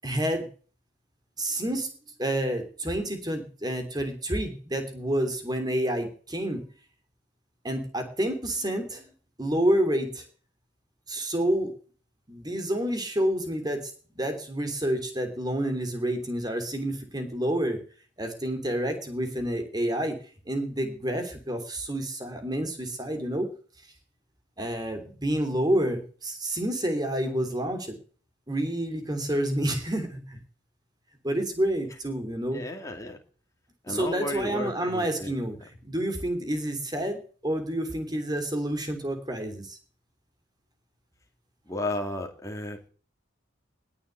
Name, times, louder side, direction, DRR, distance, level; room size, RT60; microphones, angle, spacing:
voice 1, 0.0-0.5 1.4-1.9 2.2-6.6 7.6-9.1 9.4-10.2 11.1-11.7 12.3-13.9 14.2-17.8 18.2-20.2 20.5-23.5 24.6-28.0 28.5-30.4 31.2-32.6 33.9-39.8, right 1 dB, 20° right, 7 dB, 3.1 m, -29 dB
voice 2, 32.5-33.2 33.9-35.3 41.7-42.9, left 1 dB, 15° left, 3 dB, 2.4 m, -33 dB
20.5 x 7.0 x 8.0 m, 0.42 s
head